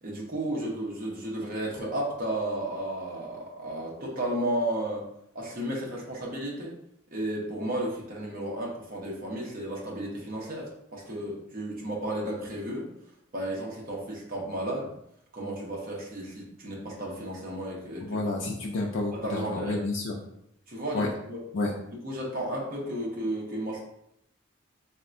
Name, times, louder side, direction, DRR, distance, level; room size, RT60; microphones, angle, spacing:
voice 1, 0.0-5.0 5.3-6.7 7.1-12.9 13.3-14.9 15.3-18.2 19.1-19.8 20.7-21.4 22.0-23.8, right 1 dB, 45° right, -3 dB, 0.7 m, -33 dB
voice 2, 18.0-20.1 20.9-21.1 21.5-21.7, left 2 dB, 65° left, -1 dB, 0.4 m, -30 dB
3.5 x 2.1 x 2.5 m, 0.76 s
head